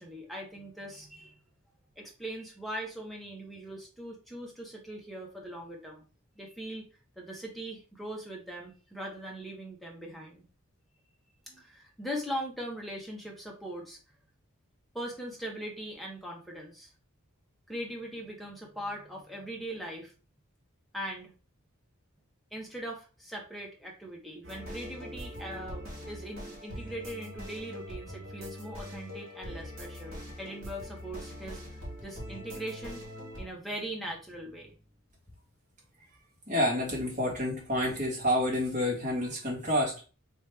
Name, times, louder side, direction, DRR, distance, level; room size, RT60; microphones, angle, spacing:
voice 1, 0.0-1.4 2.0-6.0 6.4-6.9 7.2-10.4 11.5-14.0 14.9-16.9 17.7-20.1 20.9-21.3 22.5-33.0 33.4-34.7, right 1 dB, ahead, -1 dB, 1.0 m, -40 dB
sound 1, 24.4-33.5, equal, 70° right, 1.7 m, -42 dB
voice 2, 36.5-40.0, left 1 dB, 35° right, -4 dB, 1.6 m, -29 dB
3.1 x 3.1 x 3.4 m, 0.34 s
head